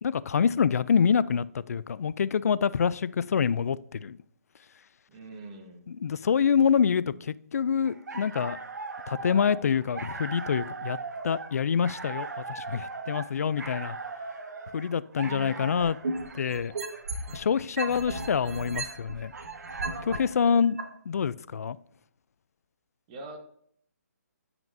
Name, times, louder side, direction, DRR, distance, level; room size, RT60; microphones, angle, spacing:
voice 1, 0.0-4.2 6.0-8.6 9.1-11.0 11.2-14.0 14.7-16.0 16.3-16.7 17.3-19.3 20.0-20.8 21.1-21.8, left 7 dB, 60° left, 0.3 m, -26 dB
voice 2, 5.1-5.8 15.2-16.0 23.1-23.4, right 2 dB, 25° right, 1.0 m, -44 dB
sound 1, 7.9-20.3, right 4 dB, 85° right, 1.0 m, -40 dB
sound 2, 15.8-17.4 17.8-20.2 20.8-20.9, right 3 dB, 60° right, 1.4 m, -33 dB
9.0 x 5.8 x 2.6 m
hypercardioid pair, 160°, 9 cm